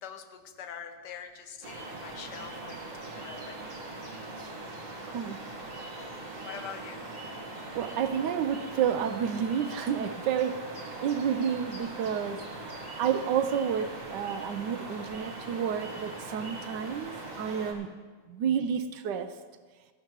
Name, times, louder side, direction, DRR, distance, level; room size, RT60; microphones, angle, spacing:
voice 1, 0.0-3.8 6.1-7.0 16.8-17.0, left 7 dB, 80° left, 8 dB, 1.4 m, -45 dB
sound 1, 1.6-17.7, right 2 dB, 45° right, 1.9 m, -41 dB
voice 2, 5.0-5.4 7.7-10.6 11.0-12.4 13.0-17.9 18.3-19.3, right 8 dB, 80° right, 10 dB, 1.2 m, -30 dB
16.0 x 13.0 x 3.1 m, 1.4 s
omnidirectional pair, 1.9 m